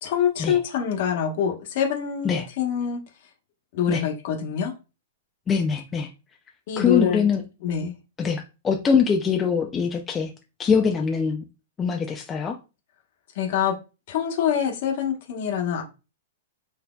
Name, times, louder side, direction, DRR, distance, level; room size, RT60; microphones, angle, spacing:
voice 1, 0.0-3.0 3.7-4.7 6.7-7.3 7.6-7.9 13.3-13.7 14.1-15.8, left 8 dB, 60° left, 1.0 m, -25 dB
voice 2, 5.5-6.1 6.8-7.5 8.2-10.3 10.6-11.4 11.8-12.6, left 6 dB, 20° left, 0.3 m, -23 dB
4.1 x 2.7 x 2.2 m
hypercardioid pair, 140°, 0 cm